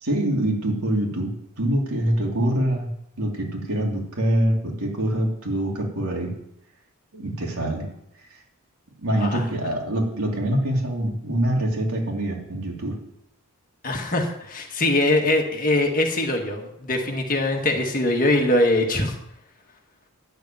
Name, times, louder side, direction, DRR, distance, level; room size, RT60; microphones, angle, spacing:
voice 1, 0.0-6.3 7.1-7.9 9.0-13.0, right 1 dB, 80° right, -1 dB, 3.0 m, -25 dB
voice 2, 13.8-19.2, left 1 dB, 40° left, 2 dB, 1.7 m, -22 dB
10.5 x 7.0 x 9.1 m, 0.78 s
head